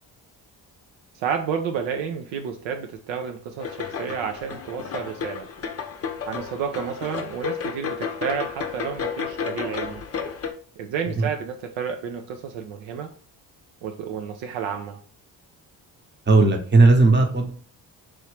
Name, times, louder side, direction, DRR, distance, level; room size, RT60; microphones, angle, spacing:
voice 1, 1.1-5.5 6.2-10.0 10.8-13.1 13.8-15.0, right 7 dB, 70° right, 5 dB, 0.6 m, -31 dB
sound 1, 3.6-10.5, left 6 dB, 30° left, 0.6 m, -32 dB
voice 2, 16.3-17.5, right 3 dB, 20° right, 3 dB, 0.9 m, -16 dB
3.1 x 2.6 x 3.2 m, 0.43 s
hypercardioid pair, 45°, 48 cm